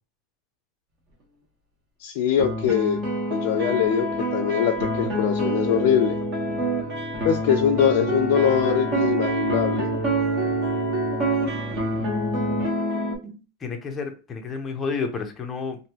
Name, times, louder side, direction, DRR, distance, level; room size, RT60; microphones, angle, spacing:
voice 1, 2.0-3.0 3.3-6.2 7.2-9.9, left 8 dB, 55° left, 0.4 m, -22 dB
sound 1, 2.4-13.2, right 1 dB, 35° right, 1.1 m, -26 dB
voice 2, 13.2-15.8, left 5 dB, 15° left, 0.6 m, -31 dB
3.1 x 2.6 x 2.9 m
supercardioid pair, 160°, 0 cm